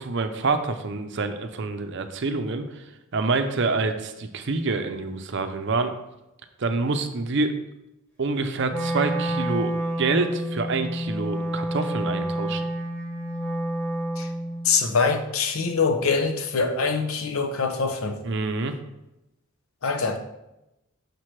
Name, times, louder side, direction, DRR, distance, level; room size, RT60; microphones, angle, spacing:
voice 1, 0.0-2.7 3.1-5.9 6.6-7.5 8.2-12.6 18.2-18.7, right 3 dB, 55° right, 8 dB, 0.6 m, -26 dB
Wind instrument woodwind instrument, 8.7-14.7, equal, 10° left, 1.0 m, -29 dB
voice 2, 14.6-18.2 19.8-20.2, left 4 dB, 75° left, 7 dB, 0.7 m, -24 dB
6.6 x 5.9 x 3.2 m, 0.92 s
head